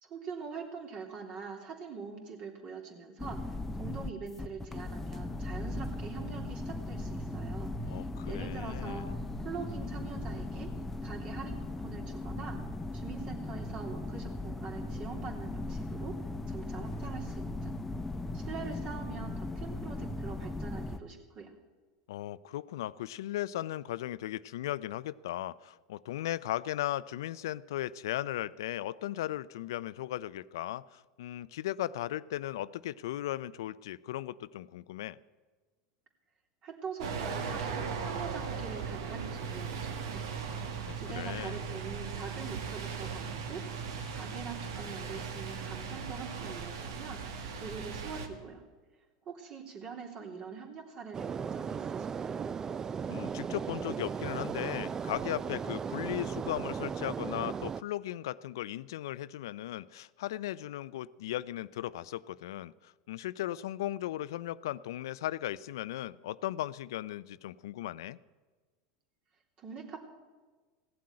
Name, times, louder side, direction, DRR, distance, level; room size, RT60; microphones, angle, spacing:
voice 1, 0.0-9.1 9.4-10.7 11.0-12.6 12.9-16.1 16.5-17.7 18.3-21.5 36.6-40.4 40.9-43.6 44.1-47.2 47.5-48.6 49.2-52.5 69.6-70.0, right 5 dB, 45° right, 2 dB, 3.1 m, -44 dB
sound 1, 3.2-21.0, left 2 dB, 10° left, 0.8 m, -38 dB
voice 2, 7.9-9.1 22.1-35.2 40.9-41.6 53.1-68.2, left 14 dB, 80° left, 18 dB, 0.4 m, -37 dB
sound 2, 37.0-48.3, right 6 dB, 75° right, 1.7 m, -38 dB
sound 3, 51.1-57.8, right 6 dB, 25° right, 0.4 m, -36 dB
16.0 x 7.7 x 9.7 m, 1.4 s
hypercardioid pair, 105°, 2 cm